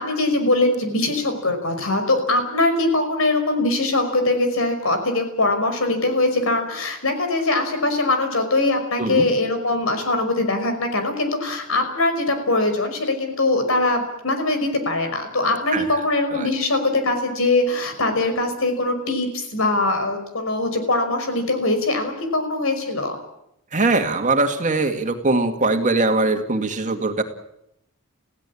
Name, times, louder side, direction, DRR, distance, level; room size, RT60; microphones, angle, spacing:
voice 1, 0.0-23.2, left 2 dB, 75° left, 7 dB, 5.5 m, -22 dB
voice 2, 23.7-27.2, right 2 dB, 35° right, 5 dB, 2.2 m, -21 dB
28.0 x 16.5 x 8.6 m, 0.81 s
head